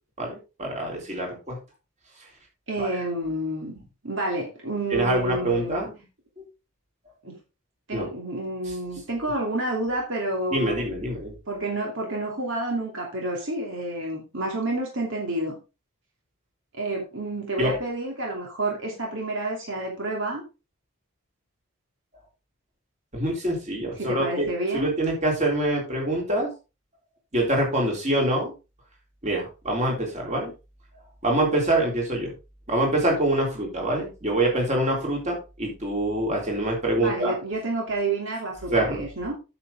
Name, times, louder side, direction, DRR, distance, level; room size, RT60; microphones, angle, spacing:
voice 1, 0.2-1.6 2.8-2.9 4.9-5.9 7.9-8.0 10.5-11.4 17.6-17.8 23.1-24.5 24.7-26.5 27.3-28.5 29.2-30.5 31.2-32.3 32.7-37.3 38.7-39.0, right 1 dB, 30° right, -1 dB, 3.6 m, -25 dB
voice 2, 2.7-5.7 7.2-7.3 7.9-10.9 11.5-15.6 16.7-20.4 24.0-24.9 37.0-39.3, right 2 dB, 60° right, -1 dB, 2.8 m, -29 dB
9.4 x 7.2 x 3.7 m, 0.29 s
head